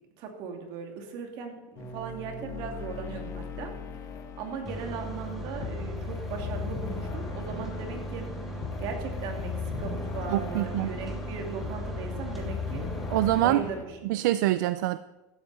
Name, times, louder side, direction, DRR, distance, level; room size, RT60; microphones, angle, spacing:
voice 1, 0.2-3.7 4.4-8.3 8.8-12.9 13.4-14.1, right 5 dB, 45° right, 3 dB, 2.8 m, -38 dB
sound 1, 1.8-13.9, left 6 dB, 30° left, 1.7 m, -38 dB
sound 2, 4.7-13.4, equal, ahead, 2.7 m, -37 dB
voice 2, 10.3-10.9 13.1-13.7 14.0-15.0, right 15 dB, 70° right, 14 dB, 0.5 m, -25 dB
16.0 x 12.5 x 4.3 m, 1.1 s
supercardioid pair, 160°, 10 cm